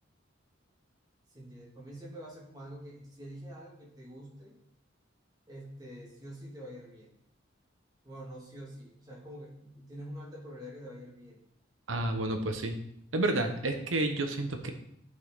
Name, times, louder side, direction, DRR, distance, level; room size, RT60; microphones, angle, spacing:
voice 1, 1.3-4.6 5.5-7.2 8.0-11.4, equal, 20° right, -4 dB, 2.6 m, -46 dB
voice 2, 11.9-12.8 13.1-14.7, right 2 dB, 85° right, 5 dB, 1.2 m, -30 dB
14.5 x 5.7 x 4.1 m, 0.72 s
head